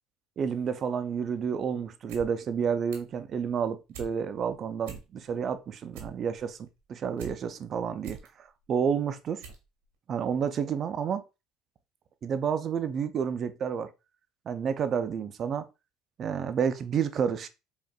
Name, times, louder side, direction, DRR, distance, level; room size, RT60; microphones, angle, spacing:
voice 1, 0.4-9.4 10.1-11.2 12.2-13.9 14.5-15.7 16.2-17.5, right 7 dB, 45° right, 0.4 m, -30 dB
sound 1, 1.9-2.3 2.6-3.2 3.6-4.1 4.5-4.6 4.8-5.4 5.7-7.3 7.7-8.3 8.8-8.9 9.4-9.7 9.9-10.0, right 7 dB, 90° right, 1.0 m, -44 dB
4.9 x 2.5 x 2.2 m
supercardioid pair, 95°, 0 cm